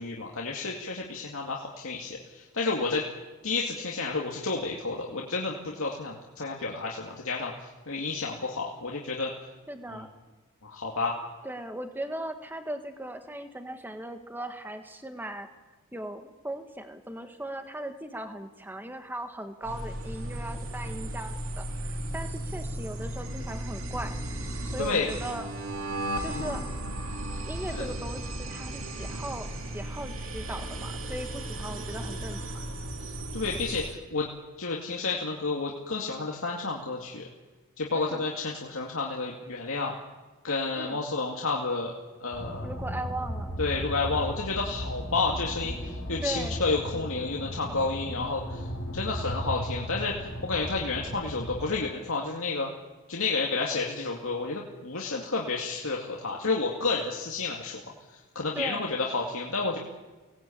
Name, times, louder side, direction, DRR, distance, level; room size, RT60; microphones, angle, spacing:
voice 1, 0.0-3.0 3.4-7.5 7.9-9.3 9.9-10.0 10.6-11.2 24.8-25.1 26.3-26.5 27.7-27.9 33.3-34.3 34.6-37.3 37.8-39.9 40.4-41.9 42.2-42.7 43.6-48.7 48.9-50.1 50.4-52.7 53.1-57.8 58.3-59.8, left 3 dB, 65° left, -2 dB, 2.4 m, -30 dB
voice 2, 9.7-10.1 11.4-15.5 15.9-24.2 24.6-25.5 26.2-26.6 27.5-29.5 29.7-32.6 37.9-38.3 40.7-41.0 42.6-43.5 46.2-46.6 58.5-58.9, right 1 dB, 10° right, 7 dB, 1.6 m, -38 dB
sound 1, 19.6-34.0, right 1 dB, 65° right, 2.7 m, -35 dB
sound 2, 42.3-51.8, equal, 85° left, 6.7 m, -36 dB
24.5 x 19.0 x 8.8 m, 1.3 s
head